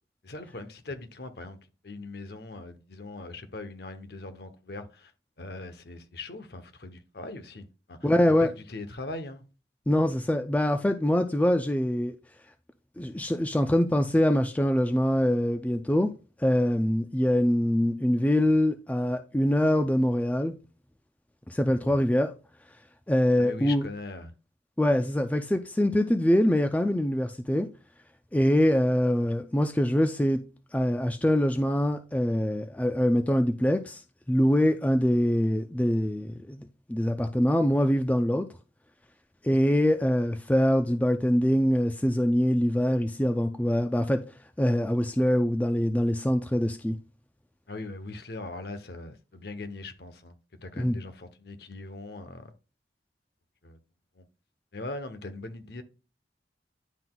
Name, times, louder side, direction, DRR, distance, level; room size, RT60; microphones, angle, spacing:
voice 1, 0.2-1.6 1.8-5.1 5.4-8.1 8.4-9.4 21.9-22.0 23.4-24.3 47.7-52.5 53.6-53.8 54.1-54.2 54.7-55.8, left 2 dB, 60° left, 0.8 m, -40 dB
voice 2, 8.0-8.5 9.9-12.1 13.0-16.1 16.4-20.5 21.5-22.3 23.1-23.8 24.8-27.7 28.3-30.4 30.7-34.0 34.3-38.5 39.4-44.2 44.6-47.0 50.8-51.0, equal, 10° left, 0.3 m, -24 dB
10.5 x 3.9 x 2.3 m
head